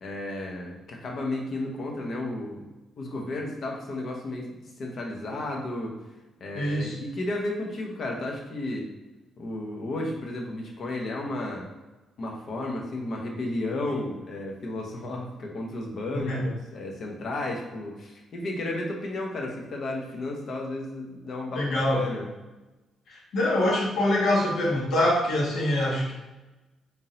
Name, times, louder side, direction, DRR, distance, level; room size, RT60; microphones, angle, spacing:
voice 1, 0.0-2.6 3.0-4.5 4.8-5.9 6.4-8.9 9.4-11.7 12.2-22.3, left 2 dB, 55° left, 0 dB, 1.0 m, -33 dB
voice 2, 6.5-6.9 16.3-16.5 21.5-22.0 23.1-26.1, left 1 dB, 70° left, -4 dB, 1.5 m, -24 dB
3.7 x 2.9 x 3.8 m, 1.1 s
cardioid pair, 90°, 0 cm